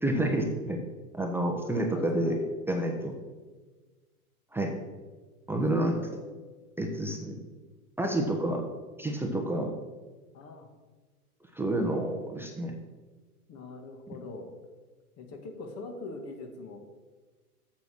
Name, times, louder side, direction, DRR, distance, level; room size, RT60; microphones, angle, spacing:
voice 1, 0.0-0.8 1.1-2.4 2.7-3.2 4.5-4.7 5.5-5.9 6.8-7.4 8.0-8.6 9.0-9.7 11.5-12.8, right 1 dB, 5° right, 2 dB, 1.0 m, -29 dB
voice 2, 1.6-2.4 5.7-6.2 10.3-10.7 13.5-14.5 15.2-16.8, left 3 dB, 35° left, 4 dB, 1.7 m, -42 dB
8.1 x 7.0 x 6.1 m, 1.3 s
hypercardioid pair, 110°, 45 cm